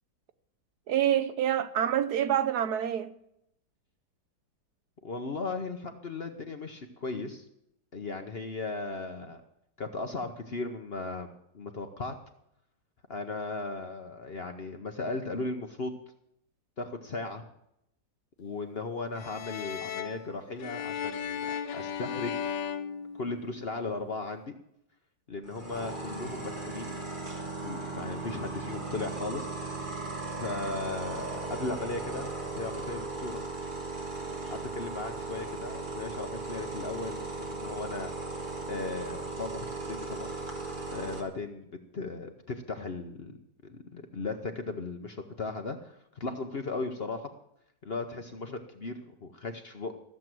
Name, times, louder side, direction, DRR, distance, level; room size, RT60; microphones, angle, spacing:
voice 1, 0.9-3.1, right 10 dB, 70° right, 1.2 m, -27 dB
voice 2, 5.0-7.5 7.9-9.4 9.8-12.2 13.1-16.0 16.8-17.4 18.4-22.4 23.1-24.6 25.3-26.9 27.6-29.5 30.4-33.4 34.5-38.1 38.7-40.3 40.9-43.4 43.6-47.3 47.8-49.9, left 3 dB, 45° left, 0.9 m, -37 dB
sound 1, 19.1-23.8, left 8 dB, 85° left, 1.5 m, -36 dB
sound 2, 25.5-41.2, right 3 dB, 30° right, 1.9 m, -37 dB
14.5 x 7.5 x 7.6 m
omnidirectional pair, 1.9 m